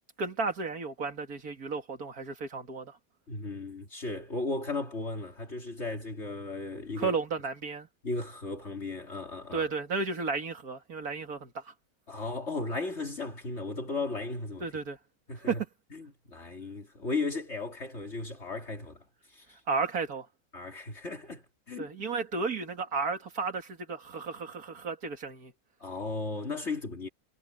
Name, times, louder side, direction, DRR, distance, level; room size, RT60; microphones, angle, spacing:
voice 1, 0.2-3.0 7.0-7.9 9.5-11.7 14.6-15.0 15.4-15.7 19.7-20.3 21.8-25.5, right 4 dB, 85° right, 2.7 m, -33 dB
voice 2, 3.3-7.1 8.0-9.7 12.1-14.7 15.3-15.6 15.9-19.6 20.5-21.9 25.8-27.1, left 3 dB, 50° left, 3.0 m, -36 dB
omnidirectional pair, 1.5 m